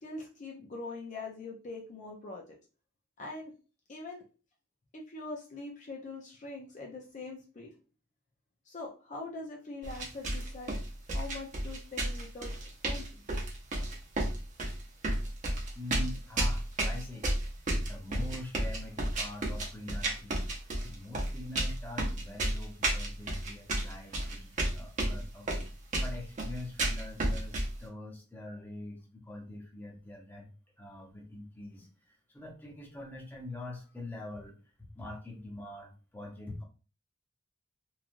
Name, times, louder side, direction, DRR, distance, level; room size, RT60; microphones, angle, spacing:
voice 1, 0.0-2.5 3.2-3.5 3.9-4.2 4.9-7.7 8.7-10.7 11.1-13.2, left 3 dB, 40° left, -1 dB, 0.5 m, -43 dB
sound 1, 9.8-27.8, right 1 dB, 40° right, 0.7 m, -32 dB
voice 2, 15.7-17.4 17.9-25.7 26.0-36.6, left 2 dB, 10° left, -1 dB, 0.7 m, -44 dB
3.2 x 2.3 x 2.5 m, 0.34 s
head